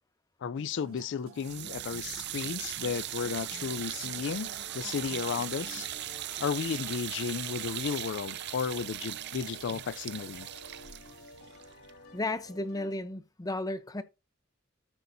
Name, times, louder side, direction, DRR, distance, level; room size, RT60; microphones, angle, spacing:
voice 1, 0.4-5.9 6.4-10.5, left 6 dB, 60° left, 0.4 m, -34 dB
sound 1, 0.6-5.9, right 2 dB, 80° right, 2.8 m, -53 dB
sound 2, 1.4-12.5, right 12 dB, 55° right, 0.5 m, -39 dB
sound 3, 3.1-13.0, left 1 dB, 80° left, 2.2 m, -52 dB
voice 2, 12.1-14.0, left 2 dB, 20° left, 0.7 m, -34 dB
13.5 x 5.5 x 2.7 m
head